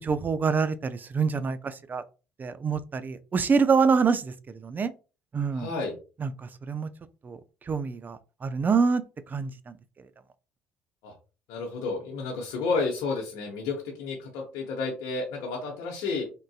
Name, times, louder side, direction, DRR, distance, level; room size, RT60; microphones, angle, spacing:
voice 1, 0.1-2.0 2.4-4.9 5.3-5.7 6.2-6.9 7.2-7.4 7.7-9.0 9.3-9.8, right 5 dB, 35° right, 0.4 m, -26 dB
voice 2, 5.5-6.0 11.0-11.1 11.5-16.2, left 4 dB, 70° left, 0.8 m, -31 dB
3.6 x 2.6 x 2.3 m
hypercardioid pair, 60°, 6 cm